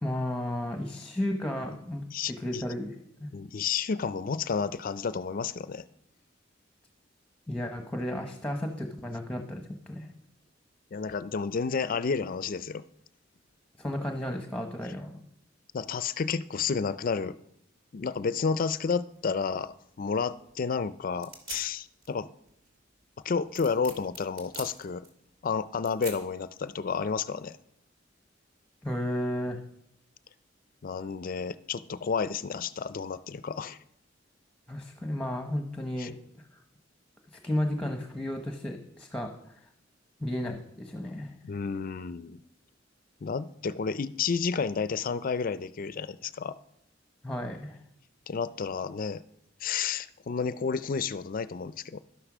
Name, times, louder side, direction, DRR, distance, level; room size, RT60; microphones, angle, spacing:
voice 1, 0.0-2.9 3.2-3.3 7.5-10.1 13.8-15.1 28.8-29.6 34.7-36.1 37.4-39.3 40.2-41.3 47.2-47.8, left 1 dB, 5° left, 4 dB, 1.0 m, -33 dB
voice 2, 2.1-2.6 3.3-5.8 10.9-12.8 15.7-17.4 17.9-22.3 23.2-25.1 25.4-27.6 30.8-33.8 36.0-36.1 41.4-42.4 43.2-46.5 48.3-49.2 49.6-52.0, left 5 dB, 50° left, 15 dB, 0.4 m, -31 dB
sound 1, 19.1-27.2, right 3 dB, 50° right, 2.8 m, -48 dB
12.0 x 10.0 x 6.1 m, 0.75 s
head